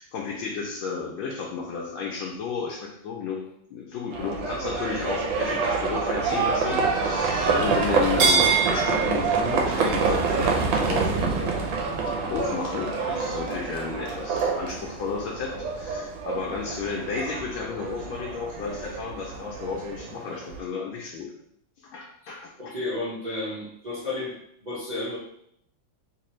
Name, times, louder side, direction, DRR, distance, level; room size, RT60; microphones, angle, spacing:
voice 1, 0.0-3.4 3.7-11.7 12.2-21.3 21.9-22.7, left 5 dB, 75° left, -2 dB, 1.3 m, -33 dB
Livestock farm animals working animals, 4.1-20.6, right 4 dB, 75° right, 1.2 m, -26 dB
voice 2, 22.6-24.4 24.6-25.2, left 2 dB, 45° right, -10 dB, 0.5 m, -32 dB
3.3 x 3.0 x 3.0 m, 0.71 s
omnidirectional pair, 2.4 m